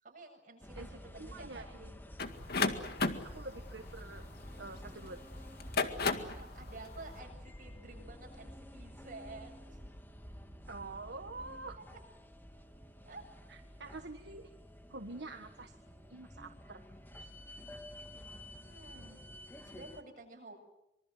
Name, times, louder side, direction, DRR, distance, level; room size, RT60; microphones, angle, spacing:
voice 1, 0.0-2.0 6.2-9.8 11.8-11.9 13.1-13.2 18.6-19.2 19.6-20.6, right 2 dB, 50° right, 3 dB, 7.6 m, -51 dB
sound 1, 0.6-20.0, equal, 10° left, 1.9 m, -50 dB
voice 2, 0.7-1.8 3.3-4.3 4.6-5.2 10.7-11.8 13.5-14.5 14.9-15.7 16.1-16.8 17.2-17.3, right 3 dB, 70° right, 6 dB, 1.5 m, -46 dB
sound 2, 2.2-4.9 5.5-6.4, left 4 dB, 60° left, 2.0 m, -33 dB
26.0 x 24.0 x 7.8 m, 0.88 s
head